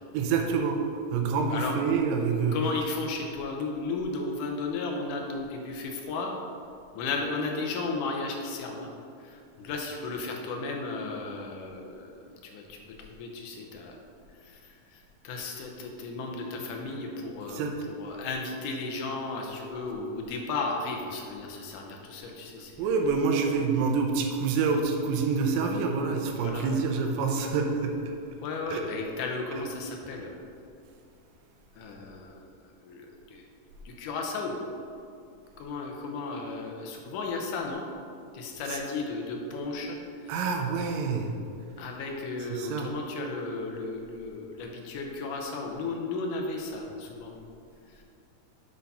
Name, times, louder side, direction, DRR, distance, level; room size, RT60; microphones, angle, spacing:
voice 1, 0.1-0.8 1.1-2.7 17.5-18.2 22.8-28.1 28.7-28.8 29.6-29.7 38.6-38.8 40.3-41.3 42.4-42.9, right 5 dB, 85° right, 3 dB, 2.4 m, -27 dB
voice 2, 2.5-6.3 6.9-8.9 9.2-12.2 12.4-14.0 14.3-22.9 26.4-26.8 28.4-30.4 31.7-32.4 32.8-33.5 33.9-34.6 35.6-37.9 38.3-40.4 41.8-47.3 47.9-48.0, left 3 dB, 70° left, 1 dB, 2.2 m, -34 dB
8.3 x 3.9 x 5.5 m, 2.5 s
omnidirectional pair, 4.1 m